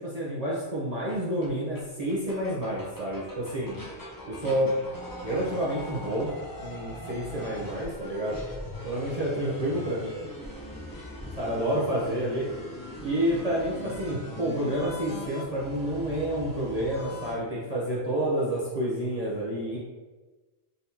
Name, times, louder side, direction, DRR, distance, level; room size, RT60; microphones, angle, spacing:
voice 1, 0.0-3.8 4.2-4.7 5.2-8.4 8.8-10.3 11.4-12.5 13.0-19.8, right 1 dB, 40° right, -7 dB, 0.9 m, -29 dB
sound 1, 1.1-1.2 1.4-1.5 1.7-1.8 2.1-17.3, left 1 dB, 20° left, 0.7 m, -41 dB
4.1 x 3.9 x 2.8 m, 1.2 s
omnidirectional pair, 1.1 m